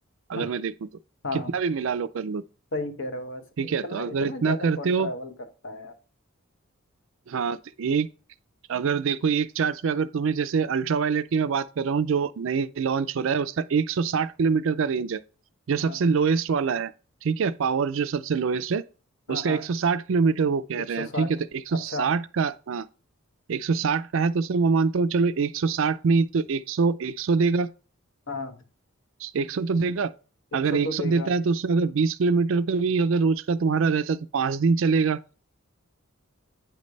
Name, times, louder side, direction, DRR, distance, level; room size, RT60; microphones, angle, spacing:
voice 1, 0.3-0.7 1.5-2.4 3.6-5.1 7.3-8.1 8.7-15.2 15.7-16.9 17.2-18.8 19.3-21.4 21.7-22.9 23.5-27.7 29.2-30.1 30.5-35.2, right 5 dB, 65° right, 0.4 m, -24 dB
voice 2, 2.7-5.3 5.6-6.0 15.8-16.0 19.3-19.6 20.7-21.3 21.7-22.1 28.3-28.6 30.5-31.3, left 2 dB, 60° left, 1.0 m, -34 dB
9.1 x 3.2 x 5.2 m
head